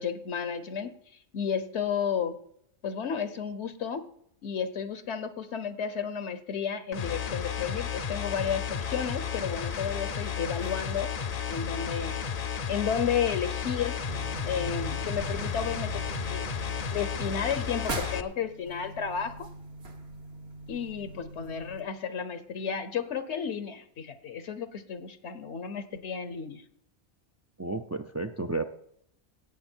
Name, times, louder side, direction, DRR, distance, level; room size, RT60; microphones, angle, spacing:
voice 1, 0.0-2.4 2.8-4.0 4.4-11.1 11.5-12.2 12.7-14.0 14.4-16.4 16.9-19.5 20.7-26.6, left 7 dB, 75° left, 11 dB, 1.1 m, -32 dB
sound 1, 6.9-18.2, left 7 dB, 45° left, 0.6 m, -33 dB
sound 2, 8.4-18.0, right 1 dB, 85° right, 3.4 m, -56 dB
sound 3, 14.1-21.8, right 2 dB, 60° right, 1.7 m, -41 dB
voice 2, 27.6-28.6, right 3 dB, 25° right, 6 dB, 0.3 m, -32 dB
17.0 x 8.1 x 4.4 m, 0.71 s
omnidirectional pair, 1.2 m